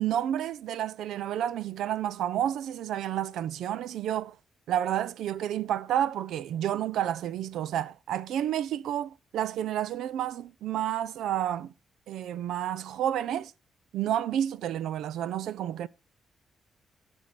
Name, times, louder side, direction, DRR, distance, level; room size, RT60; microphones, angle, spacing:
voice 1, 0.0-4.4 4.7-11.7 12.1-13.5 13.9-15.9, right 11 dB, 85° right, 0.4 m, -30 dB
13.5 x 6.2 x 4.0 m
cardioid pair, 70°, 0 cm